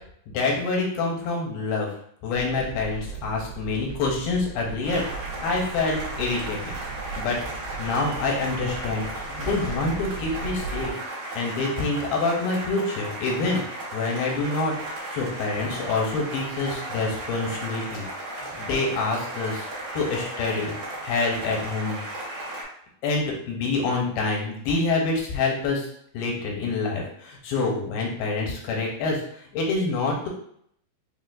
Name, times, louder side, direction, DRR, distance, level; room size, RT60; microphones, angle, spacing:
voice 1, 0.3-1.9 2.2-6.6 7.2-7.4 7.8-10.9 11.4-13.6 13.9-14.7 15.1-18.1 18.6-19.7 19.9-20.7 21.0-22.0 23.0-25.9 26.1-30.3, left 3 dB, 85° left, -1 dB, 2.7 m, -26 dB
sound 1, 2.3-10.9, right 4 dB, 75° right, 2.5 m, -38 dB
sound 2, 4.8-22.6, right 1 dB, 55° right, 2.2 m, -35 dB
5.7 x 2.4 x 2.5 m, 0.67 s
omnidirectional pair, 4.3 m